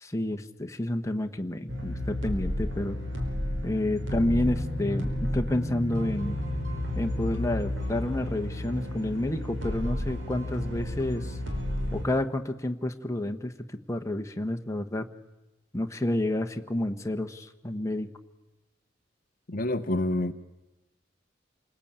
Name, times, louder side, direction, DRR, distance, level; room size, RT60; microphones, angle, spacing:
voice 1, 0.0-3.0 3.6-6.4 6.9-11.4 11.9-15.1 15.7-18.1, left 1 dB, 15° left, 5 dB, 1.2 m, -30 dB
sound 1, 1.7-12.0, left 1 dB, 65° right, 4.8 m, -32 dB
voice 2, 19.5-20.3, left 1 dB, 45° left, 10 dB, 0.8 m, -27 dB
28.0 x 20.0 x 8.8 m, 1.0 s
head